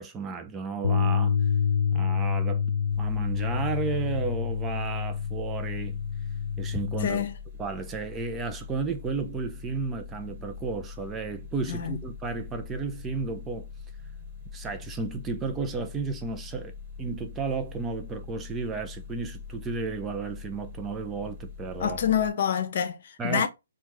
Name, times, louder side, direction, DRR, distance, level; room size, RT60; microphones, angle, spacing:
voice 1, 0.0-1.4 1.9-2.6 3.0-6.0 6.6-7.2 7.6-13.7 14.5-22.0 23.2-23.5, right 4 dB, 15° right, 0.7 m, -33 dB
Bass guitar, 0.8-7.1, left 6 dB, 85° left, 0.4 m, -27 dB
sound 1, 2.9-22.3, left 5 dB, 35° right, 1.3 m, -43 dB
voice 2, 7.0-7.3 11.7-12.0 21.8-23.5, left 8 dB, 55° left, 0.9 m, -27 dB
4.5 x 2.5 x 4.4 m
figure-of-eight pair, 135°, 0 cm